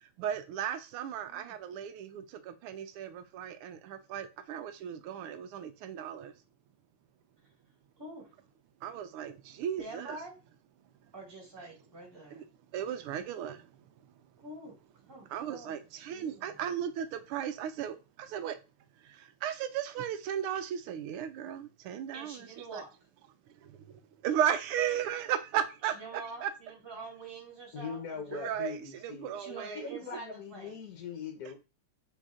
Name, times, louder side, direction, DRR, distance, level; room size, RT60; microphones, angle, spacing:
voice 1, 0.0-6.3 8.8-10.2 12.3-12.4 12.7-13.9 15.3-18.6 19.0-22.8 23.5-26.5 28.3-30.0, right 9 dB, 85° right, 1.5 m, -36 dB
voice 2, 8.0-8.3 9.8-10.3 11.1-12.4 14.4-14.7 15.1-16.6 22.1-22.9 26.0-28.4 29.4-30.7, right 2 dB, 10° right, 1.6 m, -46 dB
voice 3, 27.7-31.5, left 6 dB, 60° left, 1.0 m, -41 dB
4.2 x 3.4 x 3.6 m
omnidirectional pair, 2.4 m